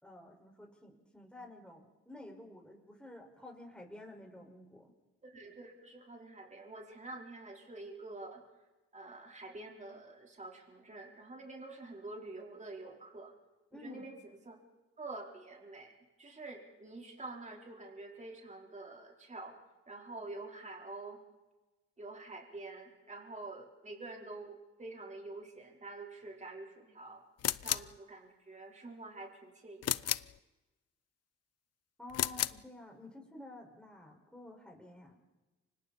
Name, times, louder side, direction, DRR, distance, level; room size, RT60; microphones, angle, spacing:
voice 1, 0.0-4.9 13.7-14.1 32.0-35.2, left 1 dB, 5° left, 1 dB, 5.3 m, -51 dB
voice 2, 5.2-8.4 8.9-13.3 13.7-14.2 14.5-14.6 15.0-15.9 16.2-19.6 19.9-21.2 22.0-27.2 27.6-30.1, right 2 dB, 25° right, 0 dB, 4.1 m, -47 dB
sound 1, 27.4-28.0 29.8-30.4 32.1-32.6, left 12 dB, 55° left, 0.6 m, -33 dB
29.5 x 25.0 x 4.3 m, 1.1 s
cardioid pair, 90°, 30 cm